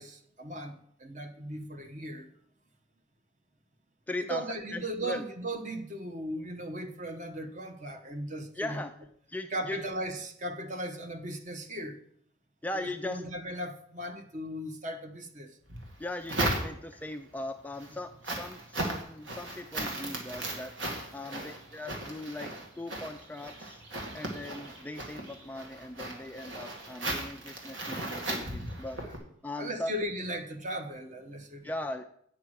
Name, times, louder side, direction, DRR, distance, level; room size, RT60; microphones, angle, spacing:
voice 1, 0.0-2.3 4.2-8.8 9.5-12.0 12.8-15.5 21.2-21.5 29.0-29.1 29.6-31.7, right 1 dB, 40° right, 1.0 m, -37 dB
voice 2, 4.1-5.3 8.6-8.9 9.3-9.8 12.6-13.2 16.0-20.7 21.1-23.8 24.1-29.0 29.4-29.9 31.6-32.1, left 1 dB, 10° left, 0.3 m, -39 dB
sound 1, 15.7-17.1 17.6-29.2, right 1 dB, 70° right, 2.1 m, -36 dB
8.9 x 5.8 x 6.2 m
head